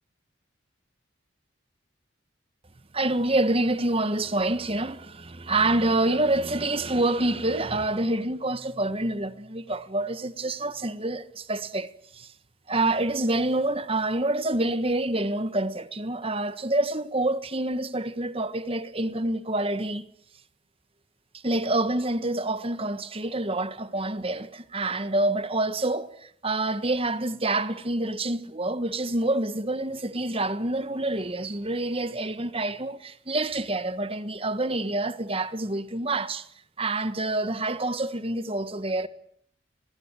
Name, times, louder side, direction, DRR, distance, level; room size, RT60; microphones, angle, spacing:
voice 1, 2.9-12.3 12.7-20.0 21.4-36.4 36.8-39.1, right 2 dB, 30° right, 1.5 m, -27 dB
25.5 x 20.5 x 8.9 m
head